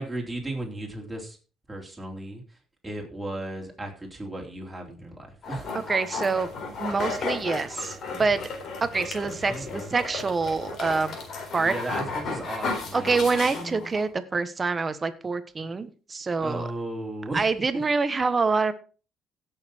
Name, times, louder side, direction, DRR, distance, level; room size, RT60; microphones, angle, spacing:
voice 1, 0.0-1.4 1.7-2.4 2.8-5.7 9.2-9.9 11.4-13.2 13.5-13.9 16.4-17.5, right 1 dB, 10° right, 0 dB, 3.9 m, -35 dB
sound 1, 5.4-14.1, left 4 dB, 55° left, 4.0 m, -34 dB
voice 2, 5.7-6.5 6.8-8.4 8.8-11.2 11.5-11.7 12.9-16.7 17.3-18.7, right 4 dB, 25° right, 11 dB, 1.3 m, -26 dB
16.0 x 6.8 x 4.5 m, 0.35 s
cardioid pair, 125°, 0 cm